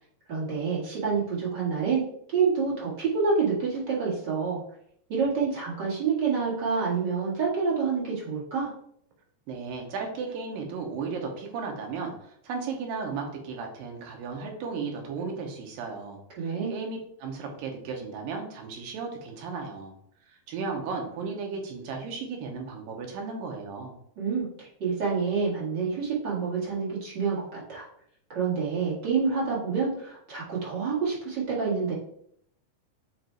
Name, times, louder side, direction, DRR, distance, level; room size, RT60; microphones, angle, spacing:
voice 1, 0.3-2.0 2.3-4.6 5.1-8.7 16.4-16.7 24.2-27.8 28.3-31.9, right 5 dB, 40° right, -6 dB, 1.7 m, -27 dB
voice 2, 9.5-19.9 20.5-23.9, right 4 dB, 75° right, 2 dB, 2.7 m, -35 dB
7.8 x 2.6 x 4.5 m, 0.67 s
omnidirectional pair, 4.3 m